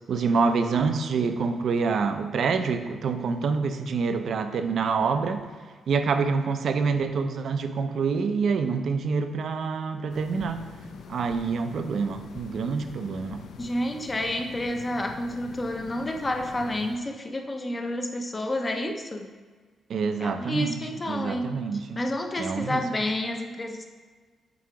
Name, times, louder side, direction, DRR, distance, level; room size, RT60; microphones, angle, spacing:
voice 1, 0.1-5.5 5.9-10.6 11.1-13.4 19.9-20.8 21.1-22.0 22.4-22.8, right 5 dB, 60° right, 8 dB, 0.5 m, -26 dB
sound 1, 10.1-17.0, left 6 dB, 70° left, 0.4 m, -44 dB
voice 2, 13.6-19.3 20.2-21.7 22.0-23.8, left 1 dB, 25° left, 4 dB, 0.6 m, -30 dB
7.6 x 2.9 x 4.7 m, 1.5 s
cardioid pair, 115°, 0 cm